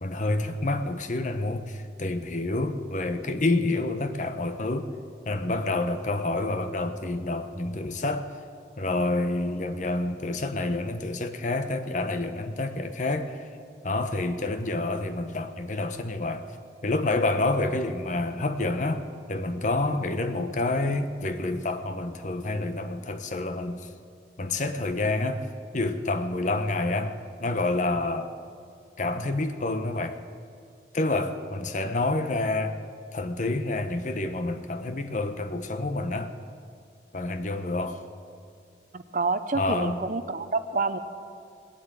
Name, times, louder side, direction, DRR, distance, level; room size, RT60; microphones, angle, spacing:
voice 1, 0.0-4.9 5.3-8.3 8.8-13.5 13.8-16.5 16.8-23.9 24.4-25.5 25.7-28.3 29.0-30.2 30.9-32.8 33.1-36.3 37.1-38.0 39.5-40.0, left 2 dB, 45° left, 9 dB, 0.9 m, -28 dB
voice 2, 38.9-41.0, right 3 dB, 45° right, 11 dB, 0.7 m, -28 dB
18.5 x 8.1 x 9.0 m, 2.3 s
head